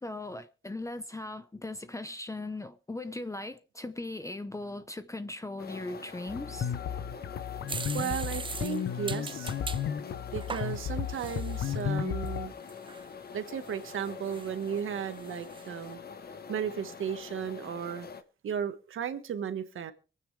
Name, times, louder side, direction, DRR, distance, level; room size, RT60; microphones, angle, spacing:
voice 1, 0.0-6.7, left 2 dB, 15° left, 0.7 m, -39 dB
sound 1, 5.6-18.2, left 5 dB, 50° left, 1.2 m, -45 dB
sound 2, 6.3-12.5, left 8 dB, 80° left, 0.9 m, -34 dB
sound 3, 7.7-9.8 10.3-11.8 12.2-12.3 12.7-13.1 13.6-14.8 15.1-15.7, right 4 dB, 25° right, 0.6 m, -41 dB
voice 2, 7.9-9.5 10.3-12.5 13.3-16.0 16.5-18.1 18.4-19.9, right 8 dB, 85° right, 1.5 m, -35 dB
25.0 x 9.2 x 3.3 m
wide cardioid pair, 115°, 20 cm